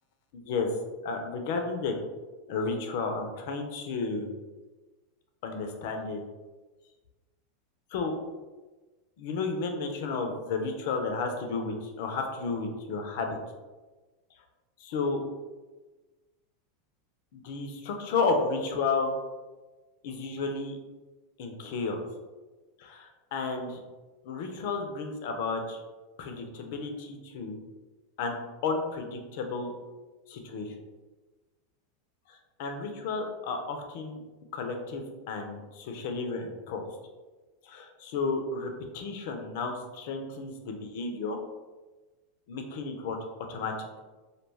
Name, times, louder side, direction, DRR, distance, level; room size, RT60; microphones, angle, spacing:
voice 1, 0.3-0.7 1.0-1.9 2.5-4.3 5.4-6.2 7.9-8.2 9.2-13.4 14.8-15.2 17.3-19.1 20.0-20.7 21.4-22.0 22.8-23.8 24.2-25.8 26.2-27.6 28.2-28.4 28.6-29.7 30.3-30.7 32.3-34.2 34.5-36.9 37.6-41.4 42.5-43.2 43.5-43.7, left 4 dB, 65° left, 4 dB, 0.5 m, -32 dB
2.3 x 2.2 x 3.2 m, 1.2 s
hypercardioid pair, 105°, 0 cm